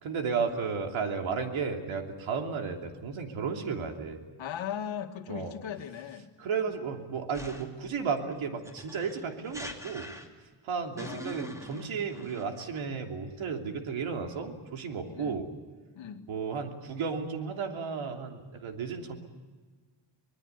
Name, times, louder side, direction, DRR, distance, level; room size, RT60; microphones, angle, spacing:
voice 1, 0.0-4.2 5.3-5.5 6.4-10.1 10.6-15.5 16.3-19.2, right 5 dB, 75° right, 3 dB, 3.2 m, -33 dB
voice 2, 4.4-6.3 11.0-11.3 15.1-15.4 16.0-16.3, left 9 dB, 70° left, 6 dB, 1.9 m, -38 dB
sound 1, 7.3-7.9 8.6-10.5 11.0-12.8, equal, 5° right, 2.5 m, -43 dB
25.5 x 20.0 x 8.1 m, 1.4 s
cardioid pair, 130°, 48 cm